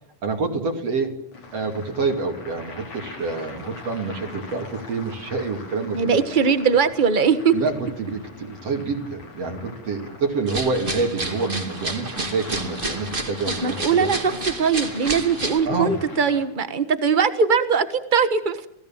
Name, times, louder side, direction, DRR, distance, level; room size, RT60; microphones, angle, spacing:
voice 1, 0.2-1.1 1.5-6.2 7.5-14.1 15.7-16.0, right 4 dB, 55° right, 2 dB, 3.7 m, -27 dB
sound 1, 1.3-16.4, left 3 dB, 80° left, 7.0 m, -41 dB
voice 2, 5.9-7.5 13.5-18.7, right 6 dB, 40° right, 11 dB, 0.6 m, -21 dB
sound 2, 10.5-15.6, right 2 dB, 20° right, 2.2 m, -30 dB
27.5 x 18.0 x 7.3 m, 0.77 s
omnidirectional pair, 3.3 m